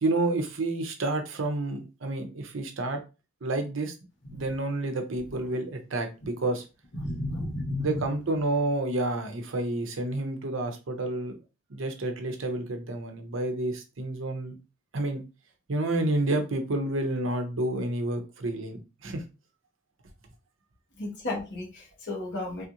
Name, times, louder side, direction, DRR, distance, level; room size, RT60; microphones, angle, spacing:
voice 1, 0.0-3.0 3.4-3.9 4.3-6.6 7.8-11.4 11.7-14.5 14.9-15.2 15.7-19.2, right 2 dB, 75° right, 5 dB, 0.7 m, -29 dB
voice 2, 6.9-8.1 21.0-22.7, left 2 dB, 60° left, -2 dB, 1.3 m, -33 dB
3.4 x 2.4 x 2.9 m, 0.30 s
head